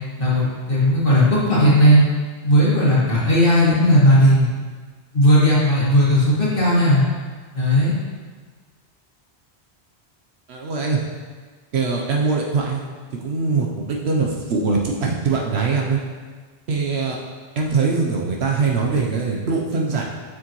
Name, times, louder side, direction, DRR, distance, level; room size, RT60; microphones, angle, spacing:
voice 1, 0.2-2.0 2.4-4.5 5.1-7.0 7.5-7.9, equal, 55° left, -8 dB, 1.9 m, -16 dB
voice 2, 10.5-11.0 11.7-12.8 13.2-16.0 16.7-17.2 17.6-20.0, right 4 dB, 80° right, -1 dB, 1.0 m, -22 dB
7.5 x 6.4 x 3.1 m, 1.5 s
omnidirectional pair, 1.1 m